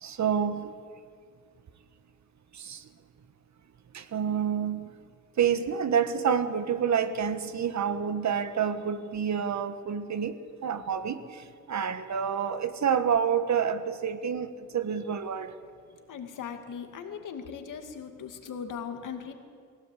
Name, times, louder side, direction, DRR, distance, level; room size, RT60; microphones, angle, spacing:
voice 1, 0.0-0.7 2.6-2.8 3.9-4.9 5.4-10.4 10.6-11.4 11.7-15.5, right 7 dB, 65° right, 11 dB, 1.4 m, -28 dB
voice 2, 16.1-19.3, left 7 dB, 85° left, 5 dB, 2.2 m, -39 dB
22.5 x 17.0 x 8.4 m, 2.2 s
cardioid pair, 90°, 31 cm